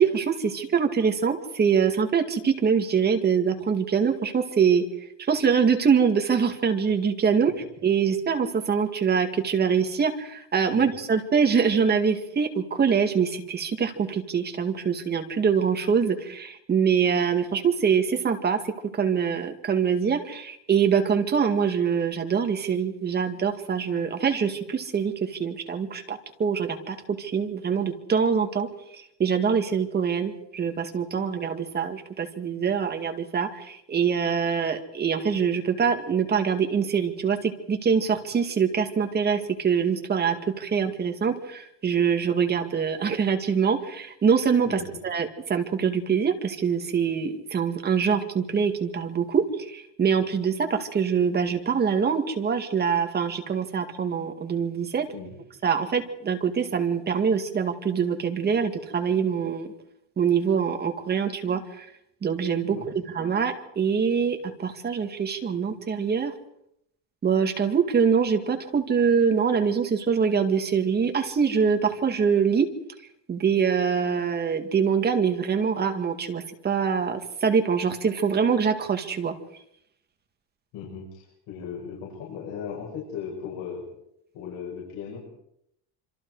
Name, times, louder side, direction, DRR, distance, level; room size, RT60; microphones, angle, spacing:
voice 1, 0.0-4.9 5.2-7.5 7.8-28.7 29.2-55.1 55.6-59.7 60.2-61.9 62.2-62.8 63.1-66.3 67.2-72.7 73.3-79.3, right 6 dB, 25° right, 5 dB, 2.1 m, -24 dB
voice 2, 44.7-45.0 55.1-55.3 62.7-62.9 80.7-83.8 84.3-85.2, left 7 dB, 80° left, -2 dB, 7.0 m, -37 dB
26.5 x 26.5 x 4.8 m, 0.75 s
cardioid pair, 175°, 39 cm